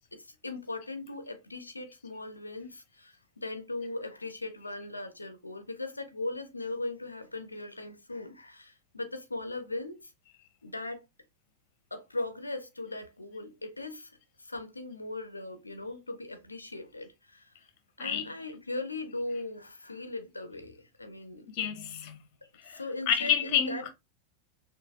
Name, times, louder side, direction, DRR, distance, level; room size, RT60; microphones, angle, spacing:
voice 1, 0.1-10.1 10.6-11.1 11.9-17.7 18.0-21.5 22.7-23.9, left 2 dB, 80° left, 0.6 m, -39 dB
voice 2, 18.0-18.3 21.5-22.2 22.6-23.9, left 8 dB, 45° left, 1.0 m, -29 dB
6.1 x 2.6 x 2.7 m
figure-of-eight pair, 90°, 0 cm